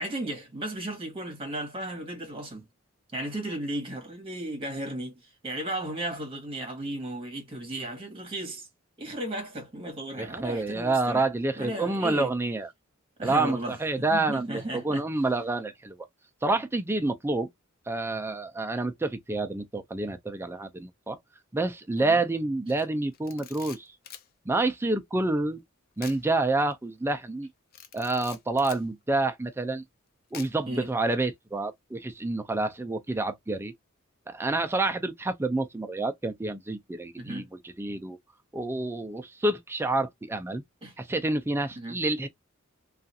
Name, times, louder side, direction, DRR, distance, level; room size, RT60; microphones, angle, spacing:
voice 1, 0.0-2.7 3.1-8.7 9.0-11.3 11.6-12.3 13.2-15.0 22.0-22.2 30.7-30.9 37.2-37.5 40.8-40.9 41.8-42.0, right 1 dB, 25° right, 1.1 m, -35 dB
voice 2, 10.2-12.7 13.2-16.0 16.4-17.5 17.9-21.2 21.5-23.9 24.5-25.6 26.0-27.5 27.9-29.8 30.3-33.7 34.3-37.4 37.8-38.2 38.5-40.6 41.0-42.3, right 2 dB, 10° right, 0.4 m, -28 dB
Camera, 23.1-24.3 26.0-26.2 26.6-26.7 27.7-28.8 30.3-30.8, left 9 dB, 45° left, 0.4 m, -45 dB
2.4 x 2.4 x 2.6 m
head